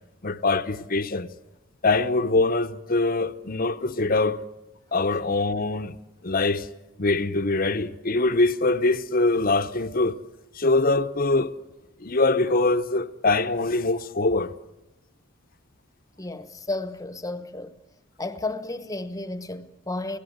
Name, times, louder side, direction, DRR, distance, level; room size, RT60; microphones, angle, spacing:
voice 1, 0.2-1.3 1.8-4.4 4.9-5.9 6.2-6.7 7.0-10.2 10.5-11.5 12.0-14.5, left 2 dB, 45° left, 0.9 m, -23 dB
voice 2, 16.2-17.7 18.2-20.2, left 2 dB, 15° left, 1.0 m, -32 dB
29.0 x 17.0 x 8.0 m
head